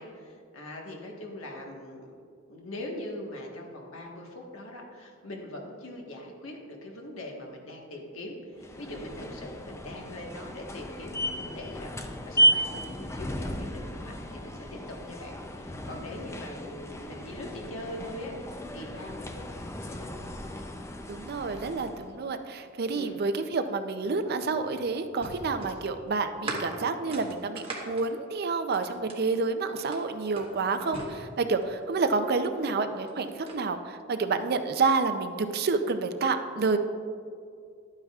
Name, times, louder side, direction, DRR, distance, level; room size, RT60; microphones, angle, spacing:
voice 1, 0.0-2.1 2.5-20.1 22.9-23.2 31.9-32.0, left 1 dB, 80° left, 0 dB, 1.4 m, -42 dB
sound 1, 8.6-22.1, right 1 dB, 15° left, 0.4 m, -33 dB
voice 2, 21.1-36.8, right 4 dB, 50° right, 9 dB, 0.5 m, -29 dB
sound 2, 24.0-29.3 29.8-31.8 32.8-33.6, right 2 dB, 30° right, 1.3 m, -40 dB
12.0 x 8.8 x 2.4 m, 2.3 s
head